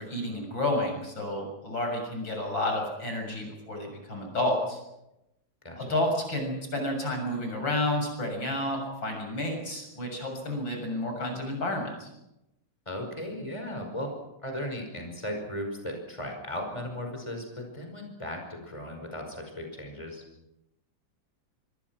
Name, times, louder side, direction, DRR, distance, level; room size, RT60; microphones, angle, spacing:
voice 1, 0.0-4.8 5.8-12.1, left 1 dB, 80° left, 3 dB, 7.7 m, -30 dB
voice 2, 12.9-14.1 14.4-20.2, equal, 15° left, 3 dB, 5.4 m, -36 dB
25.5 x 25.0 x 6.2 m, 0.90 s
omnidirectional pair, 2.1 m